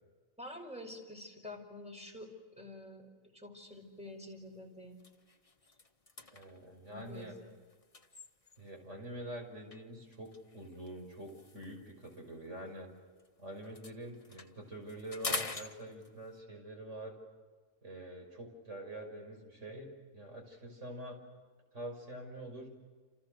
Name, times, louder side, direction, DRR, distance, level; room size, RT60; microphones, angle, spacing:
voice 1, 0.4-5.0 6.9-7.5, left 1 dB, 5° right, 0 dB, 5.1 m, -48 dB
sound 1, 3.7-4.0 4.4-4.6 4.9-8.8 9.7-13.3 13.6-16.4, left 3 dB, 25° left, 1.5 m, -45 dB
voice 2, 6.3-7.3 8.6-12.9 13.4-17.2 17.8-21.2 21.7-22.7, right 1 dB, 60° right, 2 dB, 6.2 m, -46 dB
30.0 x 29.0 x 6.6 m, 1.4 s
omnidirectional pair, 1.4 m